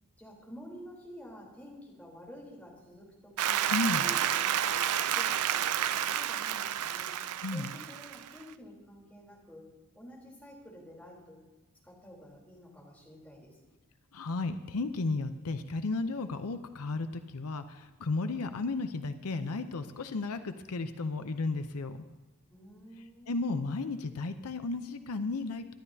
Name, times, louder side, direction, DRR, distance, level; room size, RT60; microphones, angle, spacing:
voice 1, 0.2-3.6 3.9-7.2 7.5-9.7 9.9-11.4 11.8-13.6 22.5-23.5, equal, 5° left, -4 dB, 3.6 m, -50 dB
Applause, 3.4-8.4, right 10 dB, 90° right, 0.5 m, -30 dB
voice 2, 3.7-4.1 7.4-7.7 14.1-22.0 23.3-25.7, left 3 dB, 80° left, 9 dB, 0.7 m, -34 dB
23.0 x 12.0 x 2.8 m, 1.1 s
head